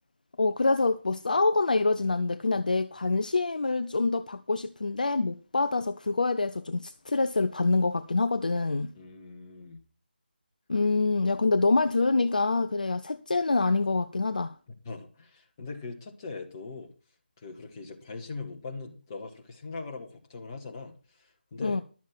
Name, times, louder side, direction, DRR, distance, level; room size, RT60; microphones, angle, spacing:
voice 1, 0.4-8.9 10.7-14.6 21.6-21.8, left 3 dB, 50° left, 0.6 m, -26 dB
voice 2, 8.9-9.8 14.8-16.9 17.4-21.8, left 4 dB, 20° left, 1.8 m, -41 dB
11.5 x 7.2 x 6.1 m
figure-of-eight pair, 160°, 6 cm